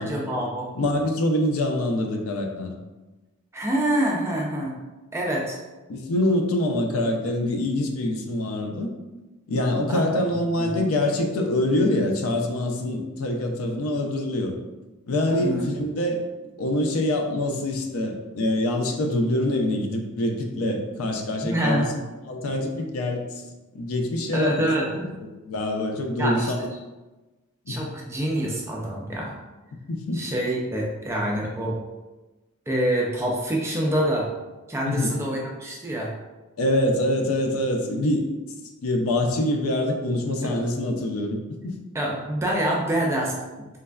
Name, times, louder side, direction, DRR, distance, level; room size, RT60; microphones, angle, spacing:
voice 1, 0.0-0.7 3.5-4.7 5.1-5.6 9.9-10.1 10.6-10.8 15.3-15.7 21.4-21.9 24.3-25.1 26.2-26.5 27.7-29.4 30.1-31.7 32.7-34.3 34.7-36.1 40.4-40.6 41.9-43.7, right 1 dB, 10° right, -2 dB, 0.3 m, -26 dB
voice 2, 0.8-2.7 5.9-8.9 9.5-14.5 15.1-16.2 16.6-21.9 22.3-23.2 23.7-24.7 25.4-26.6 27.7-27.9 29.7-30.2 34.8-35.1 36.6-38.3 38.8-41.4 41.6-41.8, left 1 dB, 70° left, 3 dB, 0.4 m, -25 dB
3.2 x 2.1 x 2.3 m, 1.1 s
head